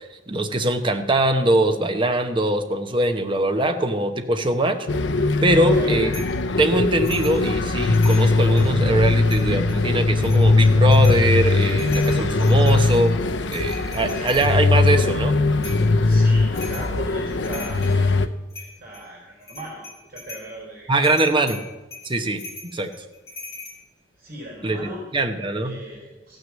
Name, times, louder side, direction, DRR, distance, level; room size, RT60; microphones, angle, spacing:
voice 1, 0.3-4.9 5.4-6.1 6.6-13.1 13.5-15.3 20.9-21.6 22.0-22.4 22.7-22.9 24.6-25.7, right 1 dB, 25° right, 6 dB, 0.9 m, -22 dB
sound 1, 4.9-18.3, left 3 dB, 70° left, 0.7 m, -20 dB
voice 2, 5.5-6.0 12.5-12.8 13.7-14.0 16.0-18.2 18.6-21.5 24.2-25.0 25.6-26.4, right 1 dB, 50° right, -3 dB, 4.1 m, -38 dB
sound 2, 6.1-6.4 7.0-7.4 7.8-8.7 9.2-9.8 10.2-11.2 11.6-14.5 15.6-15.9 16.5-16.9 17.3-18.0 18.5-19.0 19.4-20.5 21.0-23.8, left 3 dB, 15° left, 3.3 m, -39 dB
15.0 x 6.4 x 7.3 m, 1.1 s
head